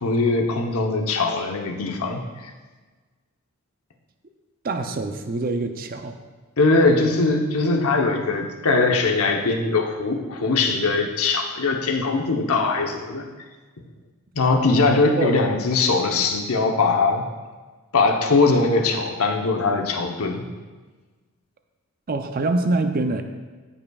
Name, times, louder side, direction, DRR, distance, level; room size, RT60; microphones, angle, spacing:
voice 1, 0.0-2.5 6.6-13.3 14.3-17.2 17.9-20.5, left 3 dB, 75° left, 2 dB, 0.9 m, -21 dB
voice 2, 4.6-6.2 15.2-15.4 22.1-23.2, right 2 dB, 40° right, 6 dB, 0.5 m, -24 dB
14.0 x 5.4 x 2.4 m, 1.4 s
head